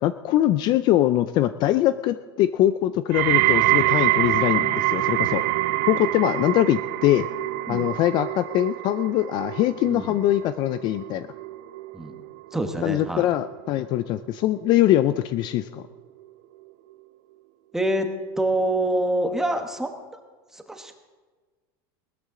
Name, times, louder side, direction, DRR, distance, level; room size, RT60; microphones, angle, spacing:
voice 1, 0.0-5.4 5.8-7.3 7.7-11.3 12.8-15.8, left 13 dB, 40° left, 13 dB, 0.4 m, -22 dB
Horror tone, 3.1-14.3 14.6-15.1 15.8-15.9, right 18 dB, 60° right, 0.4 m, -26 dB
voice 2, 9.9-10.2 11.9-12.2 12.5-13.3 17.7-18.1 18.4-19.9 20.5-21.0, right 1 dB, 5° right, 5 dB, 1.1 m, -26 dB
19.5 x 13.5 x 3.8 m, 1.4 s
supercardioid pair, 150°, 12 cm